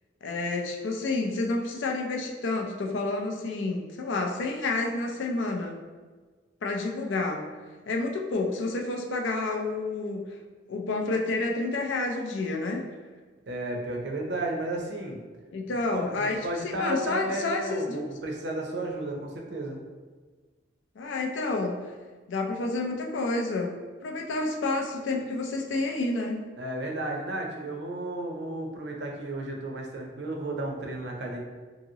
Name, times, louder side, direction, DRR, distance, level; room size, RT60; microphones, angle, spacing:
voice 1, 0.2-5.8 6.6-7.4 7.9-10.2 10.7-12.8 15.5-18.0 21.0-21.8 22.3-23.7 24.0-26.4, left 2 dB, 80° left, 2 dB, 0.4 m, -29 dB
voice 2, 13.5-15.2 15.9-19.8 26.6-31.4, right 1 dB, 65° right, 1 dB, 0.5 m, -33 dB
2.8 x 2.7 x 2.7 m, 1.4 s
head